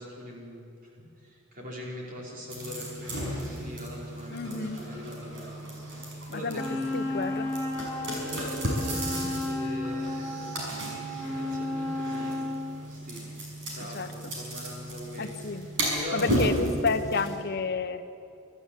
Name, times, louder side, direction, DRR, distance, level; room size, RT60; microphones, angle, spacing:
voice 1, 0.0-6.8 8.2-10.6 11.2-12.4 12.9-13.2 13.7-16.6, left 1 dB, 40° right, -3 dB, 4.6 m, -41 dB
sound 1, 2.5-17.3, right 1 dB, 55° right, 6.3 m, -34 dB
voice 2, 4.3-4.8 6.3-6.6 6.9-7.5 13.9-14.3 15.2-15.7 16.1-18.0, left 4 dB, 45° left, 8 dB, 1.1 m, -30 dB
Wind instrument woodwind instrument, 6.5-12.7, left 2 dB, 10° left, 5.0 m, -33 dB
25.0 x 14.0 x 8.5 m, 2.6 s
head